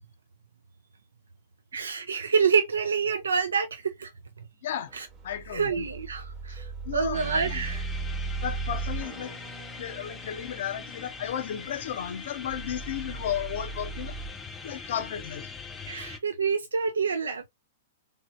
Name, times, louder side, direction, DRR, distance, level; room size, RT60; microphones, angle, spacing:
voice 1, 1.7-4.1 4.9-5.1 5.5-6.7 6.9-7.9 15.9-17.5, right 5 dB, 75° right, 0.3 m, -27 dB
voice 2, 4.6-4.9 5.2-5.9 6.9-7.6 8.4-9.4 9.8-14.2 14.6-15.5, left 10 dB, 60° left, 0.5 m, -34 dB
sound 1, 4.9-14.3, right 4 dB, 30° right, 1.1 m, -37 dB
sound 2, 7.1-16.2, left 5 dB, 15° left, 0.6 m, -42 dB
3.2 x 2.6 x 2.4 m
figure-of-eight pair, 105°, 0 cm